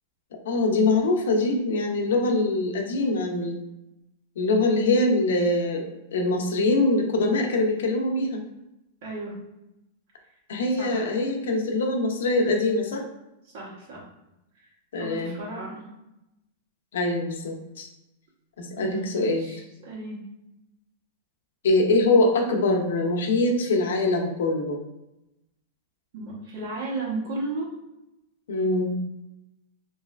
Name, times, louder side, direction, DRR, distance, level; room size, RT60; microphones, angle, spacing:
voice 1, 0.5-3.6 4.4-8.4 10.5-13.0 14.9-15.3 16.9-17.9 18.6-19.5 21.6-24.8 28.5-29.0, left 2 dB, 90° left, 3 dB, 0.6 m, -23 dB
voice 2, 9.0-9.3 10.8-11.1 13.5-14.0 15.0-15.8 18.8-20.2 26.1-27.7, right 2 dB, 50° right, -4 dB, 1.2 m, -34 dB
3.1 x 2.6 x 2.5 m, 0.91 s
supercardioid pair, 160°, 0 cm